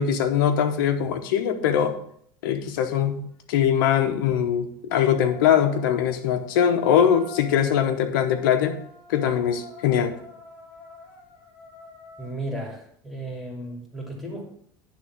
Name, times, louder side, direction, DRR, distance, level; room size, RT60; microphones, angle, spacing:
voice 1, 0.0-2.0 2.4-3.2 3.5-8.8 9.1-10.1, left 8 dB, 85° left, 9 dB, 1.0 m, -22 dB
sound 1, 1.7-2.0 4.9-12.3, left 4 dB, 50° left, 1.8 m, -45 dB
voice 2, 12.2-14.4, right 1 dB, ahead, -2 dB, 2.8 m, -34 dB
10.5 x 3.7 x 6.2 m, 0.65 s
supercardioid pair, 105°, 11 cm